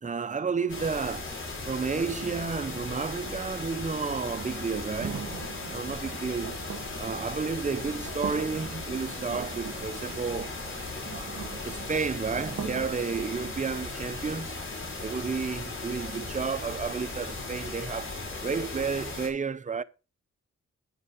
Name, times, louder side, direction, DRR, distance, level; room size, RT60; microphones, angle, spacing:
voice 1, 0.0-1.3 1.7-5.4 5.7-6.6 7.0-10.6 11.0-14.6 15.0-19.8, right 5 dB, 25° right, 0.7 m, -32 dB
sound 1, 0.7-19.3, left 3 dB, 45° left, 5.0 m, -37 dB
sound 2, 4.7-13.3, right 7 dB, 65° right, 1.4 m, -42 dB
9.6 x 7.1 x 4.9 m
cardioid pair, 80°, 29 cm